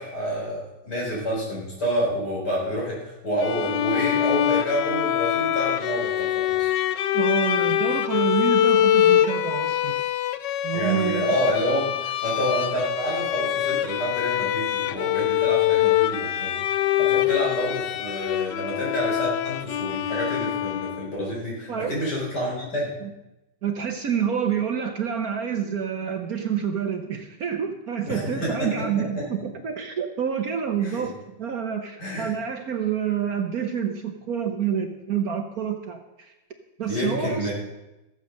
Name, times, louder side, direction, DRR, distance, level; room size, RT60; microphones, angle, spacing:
voice 1, 0.0-6.7 10.7-16.6 17.0-22.9 28.0-28.9 29.1-29.2 30.8-31.0 32.0-32.3 36.9-37.5, equal, 55° left, -4 dB, 4.9 m, -28 dB
Bowed string instrument, 3.4-21.2, left 12 dB, 75° left, 1.2 m, -24 dB
voice 2, 7.1-10.0 10.6-11.3 21.7-22.1 23.0-23.1 23.6-31.1 31.4-36.3 36.8-37.5, right 8 dB, 55° right, 5 dB, 1.3 m, -28 dB
15.0 x 8.0 x 6.5 m, 0.98 s
omnidirectional pair, 2.1 m